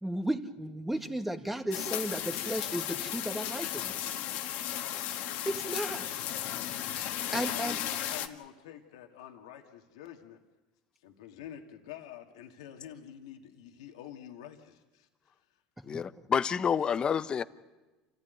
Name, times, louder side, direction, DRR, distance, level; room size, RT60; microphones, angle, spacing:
voice 1, 0.0-4.0 5.5-6.1 7.3-7.8 15.9-16.3, right 1 dB, 5° right, 1.9 m, -34 dB
sound 1, 1.7-8.3, left 11 dB, 65° left, 1.7 m, -35 dB
voice 2, 6.1-10.4 11.0-15.6, left 10 dB, 85° left, 2.0 m, -49 dB
voice 3, 15.8-17.4, left 7 dB, 30° left, 0.9 m, -28 dB
28.5 x 15.5 x 9.4 m
supercardioid pair, 100°, 3 cm